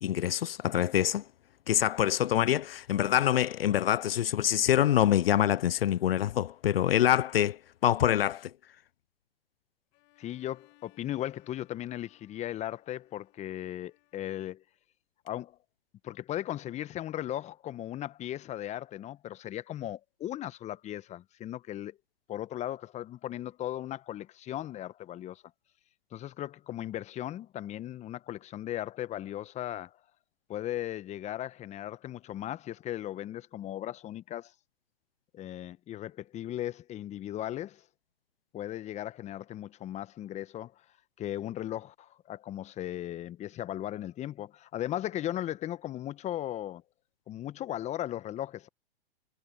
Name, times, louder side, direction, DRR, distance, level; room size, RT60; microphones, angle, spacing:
voice 1, 0.0-1.2 1.7-8.5, left 11 dB, 70° left, 0.7 m, -25 dB
Bowed string instrument, 9.9-14.6, left 30 dB, 40° left, 6.4 m, -65 dB
voice 2, 10.2-14.6 15.2-15.6 16.0-22.0 22.3-25.4 26.1-29.9 30.5-34.5 35.3-37.8 38.5-40.7 41.2-46.8 47.3-48.7, left 12 dB, 20° left, 1.2 m, -37 dB
hypercardioid pair, 115°, 30 cm